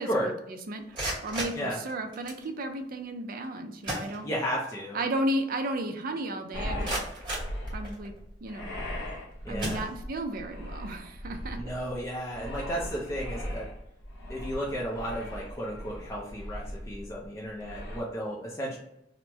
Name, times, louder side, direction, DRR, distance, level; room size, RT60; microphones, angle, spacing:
voice 1, 0.0-4.3 4.9-7.0 7.7-8.1 8.4-8.7 9.5-11.6, right 1 dB, 55° right, 6 dB, 0.4 m, -34 dB
sound 1, 0.7-2.5 3.4-3.5 3.8-4.7 5.1-5.2 5.7-5.8 6.4-8.3 8.9-9.1 9.6-10.4, right 1 dB, 25° right, 1.2 m, -37 dB
voice 2, 4.2-5.0 9.4-9.8 11.5-13.7 14.3-18.8, equal, 15° left, -4 dB, 0.4 m, -33 dB
sound 2, 6.5-18.0, equal, 75° left, 0.7 m, -38 dB
2.9 x 2.0 x 3.3 m, 0.81 s
head